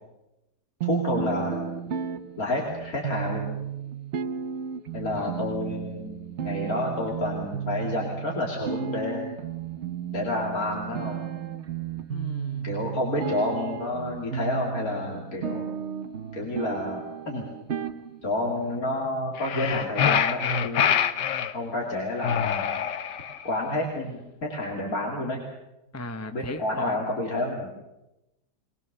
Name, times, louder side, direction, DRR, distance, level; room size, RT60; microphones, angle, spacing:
voice 1, 0.8-1.7 2.4-3.5 4.9-9.3 10.1-11.2 12.6-15.7 16.3-17.4 18.2-21.0 21.5-22.7 23.4-25.4 26.3-27.7, left 2 dB, 55° left, -1 dB, 3.1 m, -29 dB
sound 1, 0.8-18.8, right 8 dB, 50° right, 1.0 m, -34 dB
voice 2, 12.1-12.7 25.9-27.0, left 2 dB, 15° left, 8 dB, 0.5 m, -36 dB
sound 2, 19.4-21.5 22.2-23.4, left 8 dB, 75° left, 1.5 m, -25 dB
22.0 x 21.0 x 6.8 m, 0.96 s
omnidirectional pair, 1.9 m